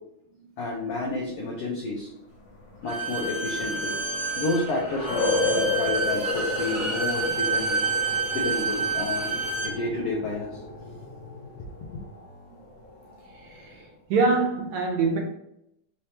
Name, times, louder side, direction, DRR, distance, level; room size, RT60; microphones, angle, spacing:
voice 1, 0.6-2.1 2.8-4.0 4.4-7.8 8.1-11.0 11.3-11.7 11.9-12.0, left 2 dB, 80° left, -3 dB, 1.3 m, -31 dB
sound 1, 2.5-13.9, left 3 dB, 50° left, 1.6 m, -33 dB
Bowed string instrument, 2.9-9.7, right 4 dB, 60° right, 1.9 m, -29 dB
voice 2, 13.3-15.2, right 4 dB, 75° right, 0 dB, 1.9 m, -25 dB
5.2 x 2.9 x 3.3 m, 0.78 s
omnidirectional pair, 3.7 m